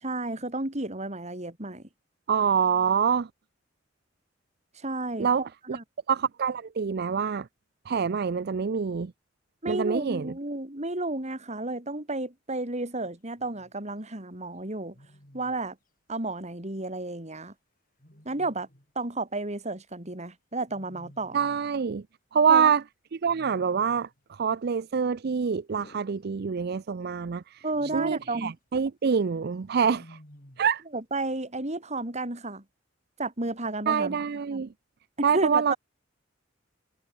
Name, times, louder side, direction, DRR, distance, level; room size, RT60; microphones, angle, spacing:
voice 1, 0.0-1.8 4.8-5.8 9.6-15.0 15.3-15.8 16.1-17.5 18.3-18.7 19.0-21.4 22.5-22.7 27.6-28.5 30.9-32.6 33.2-34.2 34.5-34.7 35.2-35.8, right 2 dB, 35° right, 4.1 m, -32 dB
voice 2, 2.3-3.3 5.2-5.4 5.7-5.8 6.1-7.5 7.9-9.1 9.7-10.3 21.3-22.0 22.3-22.8 23.1-27.6 27.9-30.2 30.6-30.8 33.9-34.7 35.2-35.7, right 6 dB, 55° right, 0.5 m, -25 dB
Wild animals, 13.3-13.7 14.9-15.6 18.0-18.9 20.7-21.8 23.2-24.2 25.7-26.8 27.6-28.5 29.8-30.8, equal, 45° left, 6.0 m, -53 dB
head